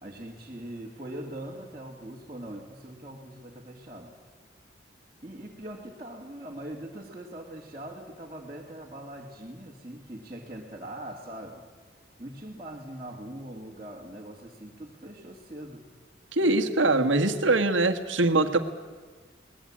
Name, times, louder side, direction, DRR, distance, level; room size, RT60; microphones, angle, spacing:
voice 1, 0.0-4.1 5.2-11.7 12.2-15.9 16.4-16.8, right 1 dB, 25° right, -5 dB, 2.4 m, -42 dB
voice 2, 16.3-18.6, right 2 dB, 85° right, 7 dB, 1.7 m, -23 dB
22.5 x 19.5 x 8.7 m, 1.4 s
head